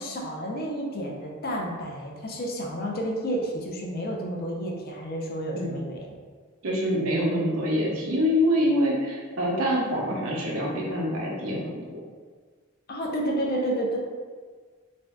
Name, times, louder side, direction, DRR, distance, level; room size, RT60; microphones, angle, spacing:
voice 1, 0.0-6.2 12.9-14.0, right 1 dB, 45° left, -1 dB, 0.5 m, -30 dB
voice 2, 6.6-11.8, equal, 80° right, -3 dB, 0.7 m, -25 dB
2.5 x 2.2 x 3.3 m, 1.5 s
head